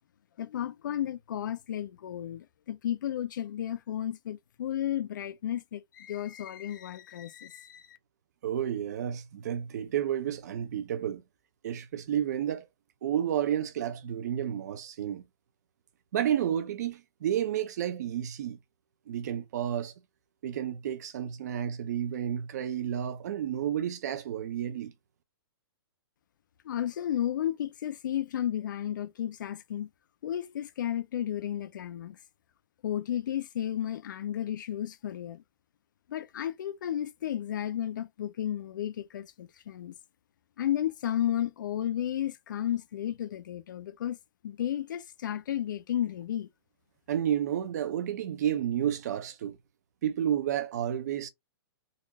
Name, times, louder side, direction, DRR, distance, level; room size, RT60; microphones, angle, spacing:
voice 1, 0.4-8.0 26.6-29.9 30.2-32.2 32.8-35.4 36.1-39.9 40.6-44.2 44.4-46.5, left 11 dB, 50° left, 0.6 m, -33 dB
voice 2, 8.4-11.2 11.6-12.6 13.0-15.2 16.1-18.6 19.1-19.9 20.4-24.9 47.1-49.6 50.0-51.3, right 10 dB, 40° right, 0.8 m, -31 dB
4.0 x 2.5 x 3.0 m
hypercardioid pair, 170°, 13 cm